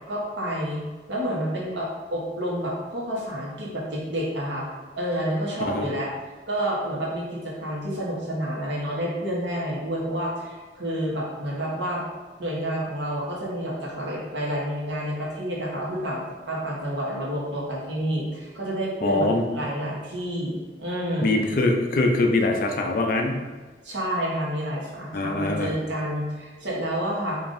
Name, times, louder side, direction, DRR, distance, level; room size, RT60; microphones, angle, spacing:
voice 1, 0.1-0.8 1.1-4.7 5.0-6.1 6.5-12.0 12.4-21.4 23.8-27.4, equal, 80° right, -4 dB, 1.0 m, -29 dB
voice 2, 19.0-19.5 21.2-23.4 25.1-25.7, left 2 dB, 50° left, 3 dB, 0.4 m, -23 dB
5.1 x 2.5 x 2.6 m, 1.3 s
head